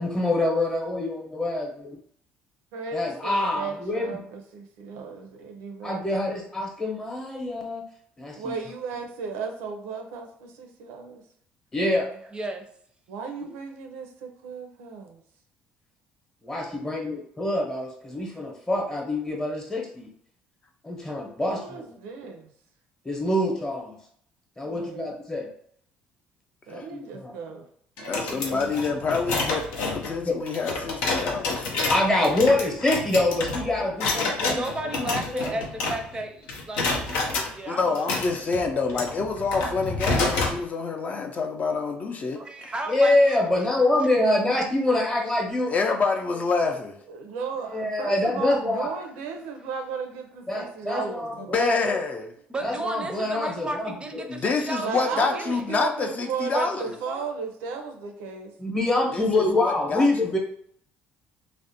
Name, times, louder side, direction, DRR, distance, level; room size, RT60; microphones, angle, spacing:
voice 1, 0.0-1.9 2.9-4.2 5.8-7.8 8.2-8.5 11.7-12.1 13.4-13.5 16.4-20.1 20.8-22.0 23.0-23.9 24.6-25.5 26.7-27.3 30.3-30.4 31.0-31.1 31.9-34.6 35.0-35.5 42.9-45.7 47.7-48.9 50.5-52.0 52.6-54.2 58.6-60.4, left 2 dB, 15° left, 1 dB, 0.8 m, -25 dB
voice 2, 2.7-6.2 8.3-11.2 13.1-15.2 21.4-22.5 24.6-25.1 26.7-27.6 28.0-28.7 47.1-51.5 54.8-58.5, right 5 dB, 90° right, 4 dB, 0.5 m, -35 dB
voice 3, 12.3-12.7 34.4-38.1 42.3-43.4 52.5-55.6 56.5-56.7 57.1-57.2, right 2 dB, 25° right, 5 dB, 0.5 m, -34 dB
sound 1, 28.0-36.2 36.5-37.5 37.9-40.6, left 3 dB, 90° left, 0.5 m, -29 dB
voice 4, 28.1-31.9 37.7-42.7 45.7-47.0 51.5-52.3 54.3-57.0 59.1-60.4, left 4 dB, 40° left, 4 dB, 0.4 m, -27 dB
2.4 x 2.0 x 2.7 m, 0.64 s
supercardioid pair, 85°, 4 cm